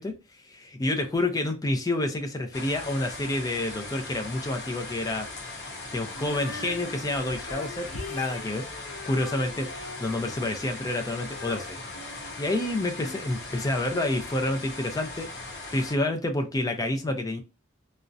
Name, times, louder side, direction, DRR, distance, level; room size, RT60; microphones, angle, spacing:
voice 1, 0.0-5.3 5.9-8.7 9.0-15.3 15.7-17.4, left 1 dB, 15° left, 5 dB, 0.4 m, -29 dB
sound 1, 2.5-16.0, left 2 dB, 55° left, 0.8 m, -39 dB
Female singing, 6.1-13.2, left 3 dB, 80° left, 0.5 m, -42 dB
2.6 x 2.0 x 2.3 m, 0.29 s
head